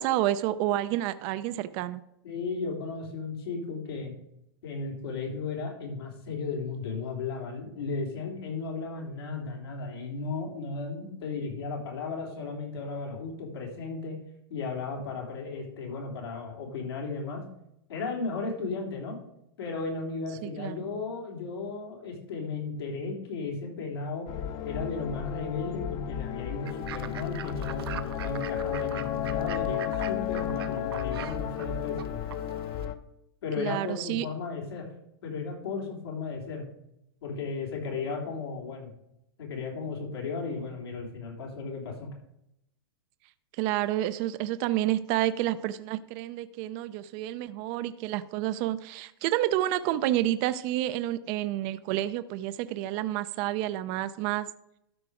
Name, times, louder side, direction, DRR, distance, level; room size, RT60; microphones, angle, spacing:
voice 1, 0.0-2.0 20.4-20.9 33.6-34.3 43.5-54.5, right 14 dB, 40° right, 13 dB, 0.4 m, -29 dB
voice 2, 2.2-4.1 4.6-14.2 14.5-17.4 17.9-19.2 19.6-24.3 24.6-32.2 33.4-34.9 35.2-36.6 37.2-38.9 39.4-42.1, left 4 dB, 85° left, -1 dB, 3.3 m, -35 dB
sound 1, 24.3-32.9, left 10 dB, 35° left, 0.7 m, -33 dB
Fowl / Bird, 26.7-32.9, right 11 dB, 80° right, 0.7 m, -43 dB
12.5 x 4.8 x 4.9 m, 0.79 s
hypercardioid pair, 140°, 13 cm